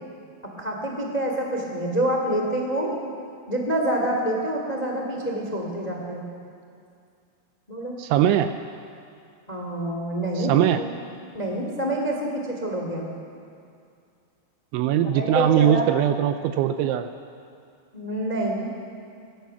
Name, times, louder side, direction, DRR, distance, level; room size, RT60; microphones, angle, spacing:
voice 1, 0.6-2.9 3.5-6.3 7.7-8.0 9.5-10.8 11.3-13.1 15.1-15.8 17.9-18.7, right 1 dB, 65° left, 1 dB, 0.4 m, -27 dB
voice 2, 8.0-8.5 10.4-10.8 14.7-17.1, right 10 dB, 80° right, 9 dB, 2.7 m, -21 dB
23.5 x 16.5 x 7.0 m, 2.4 s
omnidirectional pair, 5.8 m